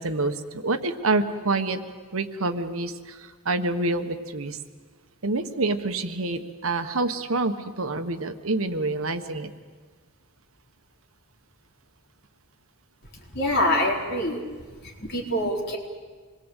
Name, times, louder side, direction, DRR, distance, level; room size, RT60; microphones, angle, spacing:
voice 1, 0.0-1.8 2.1-4.6 5.2-9.5, right 2 dB, 80° right, 8 dB, 1.4 m, -27 dB
voice 2, 13.3-14.4 14.7-15.8, left 1 dB, 50° left, -1 dB, 4.4 m, -25 dB
26.5 x 21.5 x 8.3 m, 1.5 s
head